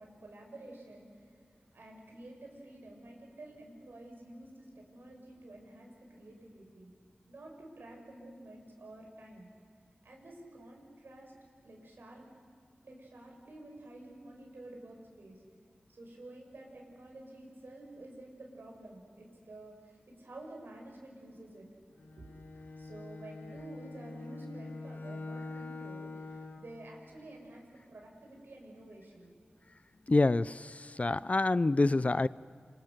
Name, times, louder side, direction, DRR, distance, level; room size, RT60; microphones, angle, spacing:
voice 1, 0.0-1.4 1.7-6.9 7.3-9.5 10.0-11.3 11.6-12.2 12.8-15.4 15.9-21.7 22.8-29.3, right 1 dB, 80° right, 0 dB, 7.0 m, -50 dB
Bowed string instrument, 22.0-26.7, left 3 dB, 85° left, 4.3 m, -44 dB
voice 2, 30.1-32.3, left 2 dB, 40° left, 18 dB, 0.5 m, -27 dB
27.5 x 26.5 x 6.7 m, 2.2 s
cardioid pair, 50°, 4 cm